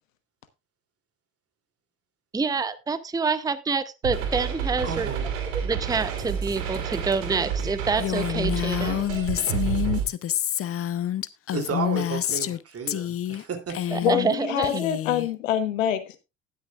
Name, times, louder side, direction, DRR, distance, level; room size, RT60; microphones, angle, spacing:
voice 1, 2.3-5.1 5.6-9.0 13.9-14.9, right 4 dB, 10° right, 0.7 m, -27 dB
sound 1, 4.0-10.0, right 7 dB, 75° right, 2.8 m, -29 dB
voice 2, 4.8-5.3 11.5-14.0, right 5 dB, 35° right, 3.0 m, -32 dB
Female speech woman speaking, 8.0-12.6 12.9-13.4 13.7-14.3 14.6-15.3, left 11 dB, 35° left, 0.7 m, -28 dB
voice 3, 14.0-16.2, left 11 dB, 80° left, 1.2 m, -25 dB
19.5 x 6.6 x 2.4 m
hypercardioid pair, 60°, 39 cm